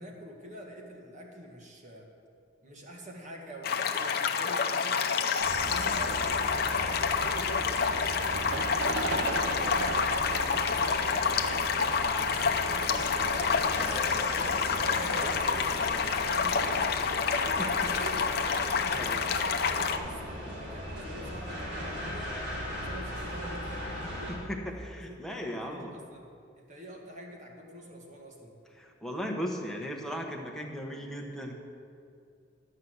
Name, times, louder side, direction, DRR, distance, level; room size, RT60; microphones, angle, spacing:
voice 1, 0.0-2.1 2.6-5.3 5.7-6.2 6.6-11.5 12.2-17.1 17.4-20.2 20.6-24.3 25.1-26.3 26.6-28.5, equal, 40° right, 0 dB, 1.7 m, -46 dB
sound 1, 3.6-20.0, left 5 dB, 55° left, 0.7 m, -28 dB
sound 2, 5.4-24.4, equal, 65° right, 2.8 m, -38 dB
sound 3, 6.8-19.1, right 4 dB, 85° right, 0.6 m, -40 dB
voice 2, 24.3-26.0 28.8-31.5, equal, ahead, 0 dB, 1.0 m, -37 dB
12.0 x 5.6 x 8.0 m, 2.4 s
head